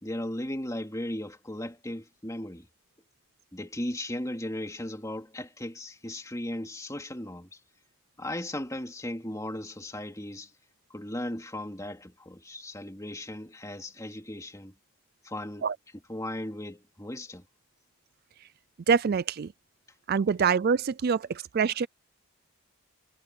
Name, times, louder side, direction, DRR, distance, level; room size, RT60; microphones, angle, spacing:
voice 1, 0.0-2.7 3.5-7.5 8.2-10.5 10.9-14.7 15.2-15.7 16.1-17.4, left 1 dB, 15° left, 3.0 m, -36 dB
voice 2, 18.9-19.5 20.1-21.9, right 6 dB, 45° right, 0.4 m, -25 dB
head